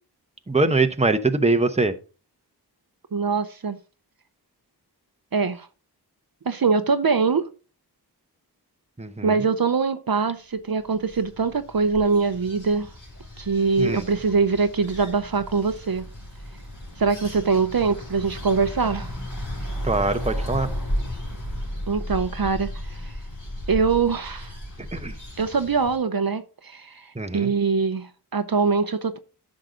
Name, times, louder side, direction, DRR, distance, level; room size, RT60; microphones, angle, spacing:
voice 1, 0.5-1.9 9.0-9.4 13.8-14.0 19.8-20.7 24.9-25.1 27.2-27.5, right 3 dB, 15° right, 1.0 m, -22 dB
voice 2, 3.1-3.8 5.3-5.7 6.5-7.5 9.2-12.9 13.4-16.0 17.0-19.1 21.9-23.1 23.7-24.5 25.4-29.2, right 4 dB, 60° right, 0.8 m, -23 dB
sound 1, 10.7-26.0, equal, 50° left, 5.0 m, -34 dB
10.0 x 6.6 x 3.8 m
wide cardioid pair, 50°, 41 cm